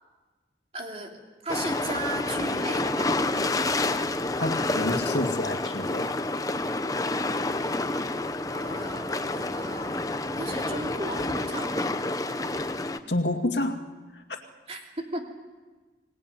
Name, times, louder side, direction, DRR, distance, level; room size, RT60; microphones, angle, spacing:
voice 1, 0.7-3.1 8.5-10.0 10.3-11.9 14.7-15.2, right 2 dB, 35° right, 1 dB, 3.3 m, -36 dB
sound 1, 1.5-13.0, left 2 dB, 20° left, 0.8 m, -29 dB
voice 2, 4.4-6.1 13.1-13.8 14.1-14.4, left 1 dB, 80° left, 5 dB, 2.2 m, -29 dB
24.5 x 19.0 x 9.4 m, 1.3 s
head